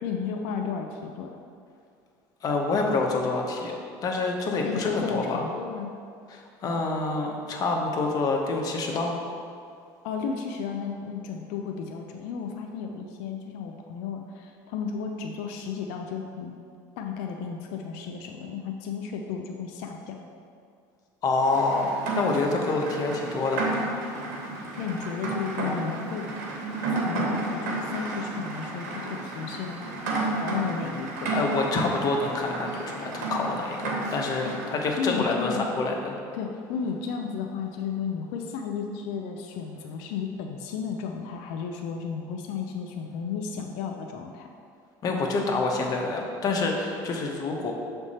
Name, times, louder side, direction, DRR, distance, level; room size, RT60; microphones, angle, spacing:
voice 1, 0.0-1.4 4.6-5.9 10.0-16.5 17.0-20.2 24.8-26.3 26.9-29.8 30.2-31.4 34.4-34.6 35.0-35.7 36.3-44.5, left 6 dB, 75° left, 3 dB, 0.5 m, -33 dB
voice 2, 2.4-3.7 4.0-5.4 6.3-9.2 21.2-23.6 31.3-36.2 45.0-47.7, left 3 dB, 45° left, 1 dB, 0.9 m, -27 dB
Rain, 21.4-34.7, right 2 dB, 85° right, 1.1 m, -32 dB
7.1 x 3.5 x 4.2 m, 2.3 s
supercardioid pair, 110°, 9 cm